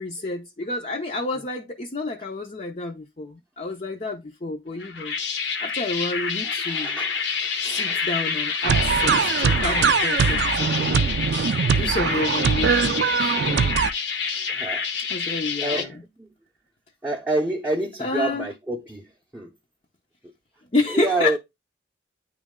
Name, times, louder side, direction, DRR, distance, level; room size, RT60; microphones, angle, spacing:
voice 1, 0.0-5.2 5.6-7.0 7.6-11.1 11.7-13.8 15.1-15.9 18.0-18.5 20.7-21.4, left 2 dB, 40° left, 0.6 m, -30 dB
sound 1, 4.8-15.9, left 6 dB, 75° left, 1.0 m, -27 dB
voice 2, 6.4-7.2 7.6-8.0 9.5-9.6 14.5-14.8 15.6-16.0 17.0-19.0 19.3-19.5 20.9-21.4, right 2 dB, 10° right, 0.6 m, -27 dB
sound 2, 8.6-13.9, right 6 dB, 70° right, 0.4 m, -22 dB
9.2 x 3.2 x 3.6 m
head